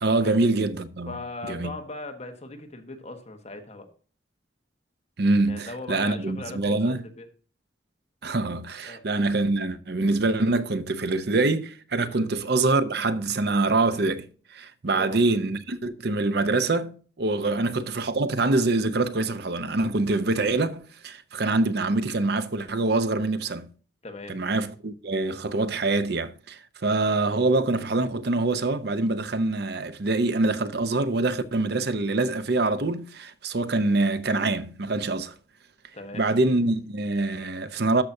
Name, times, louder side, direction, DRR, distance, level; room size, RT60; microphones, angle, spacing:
voice 1, 0.0-1.2 1.4-1.7 5.2-7.0 8.2-23.7 24.3-35.3 36.1-38.0, right 2 dB, 65° right, 0.7 m, -25 dB
voice 2, 1.1-3.9 5.5-7.3 8.9-9.0 12.0-12.2 14.9-15.2 17.4-17.6 24.0-24.4 35.9-36.2, left 2 dB, 40° left, 1.3 m, -39 dB
13.0 x 5.8 x 2.7 m
head